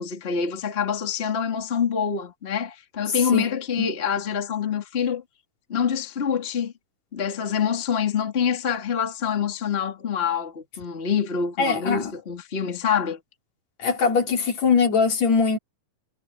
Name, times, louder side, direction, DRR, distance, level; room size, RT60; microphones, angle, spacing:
voice 1, 0.0-5.2 5.7-6.7 7.1-13.2, left 7 dB, 20° left, 2.2 m, -26 dB
voice 2, 11.6-12.1 13.8-15.6, left 5 dB, 60° left, 4.0 m, -21 dB
omnidirectional pair, 3.6 m